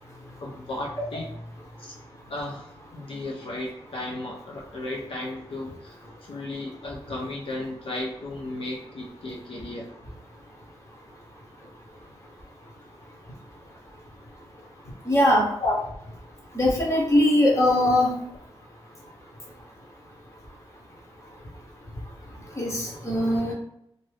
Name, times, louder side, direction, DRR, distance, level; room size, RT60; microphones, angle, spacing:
voice 1, 0.4-1.3 1.8-1.9 2.3-6.0 6.2-9.9 13.7-13.8 15.6-15.8 18.0-18.1, left 2 dB, 65° left, -2 dB, 0.6 m, -34 dB
voice 2, 15.0-15.5 16.5-18.1 22.6-23.5, left 1 dB, 30° left, -2 dB, 1.0 m, -21 dB
2.6 x 2.6 x 3.2 m, 0.76 s
wide cardioid pair, 125°, 10 cm